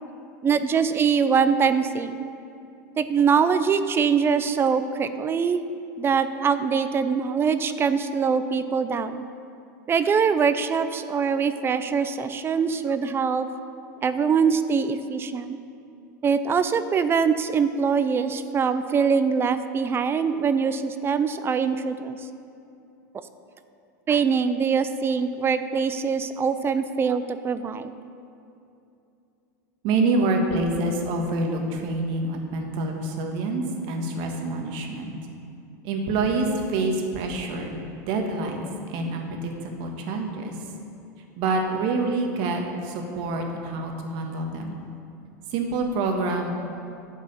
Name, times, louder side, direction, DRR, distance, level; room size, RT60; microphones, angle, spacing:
voice 1, 0.4-2.2 3.0-5.6 6.0-9.2 9.9-13.5 14.0-15.6 16.2-22.2 24.1-27.9, right 6 dB, 25° right, 11 dB, 0.4 m, -23 dB
voice 2, 29.8-35.1 35.8-40.6 41.4-44.8 45.5-46.5, right 2 dB, 55° right, 2 dB, 1.5 m, -27 dB
11.0 x 4.8 x 7.0 m, 2.7 s
hypercardioid pair, 110°, 10 cm